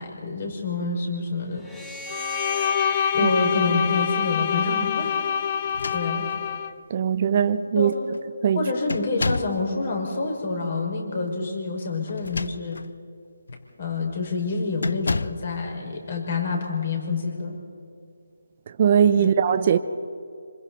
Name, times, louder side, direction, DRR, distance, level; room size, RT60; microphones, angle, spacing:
voice 1, 0.0-1.7 3.1-5.3 5.9-6.3 7.7-7.9 8.5-12.8 13.8-17.6 19.2-19.3 19.7-19.8, left 3 dB, 45° left, 5.7 m, -27 dB
sound 1, 1.5-4.8, equal, 5° left, 1.8 m, -39 dB
Bowed string instrument, 2.1-6.7, left 8 dB, 30° left, 0.6 m, -25 dB
sound 2, 5.6-6.5 7.4-7.5 7.9-8.2 8.9-9.6 12.1-12.9 13.5-13.7 14.8-15.5, left 3 dB, 75° left, 0.7 m, -30 dB
voice 2, 6.9-7.9 8.4-8.7 18.8-19.8, right 8 dB, 35° right, 0.8 m, -20 dB
27.0 x 26.5 x 4.3 m
figure-of-eight pair, 160°, 0 cm